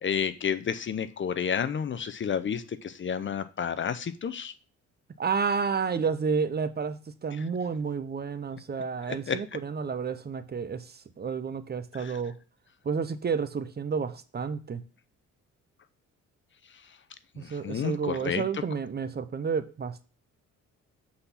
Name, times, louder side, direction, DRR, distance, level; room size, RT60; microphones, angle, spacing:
voice 1, 0.0-4.5 9.1-9.4 11.9-12.1 17.4-18.6, left 7 dB, 40° left, 0.7 m, -31 dB
voice 2, 5.2-12.4 12.8-14.8 17.4-20.0, right 5 dB, 35° right, 0.8 m, -30 dB
7.9 x 4.2 x 5.6 m
cardioid pair, 90°, 30 cm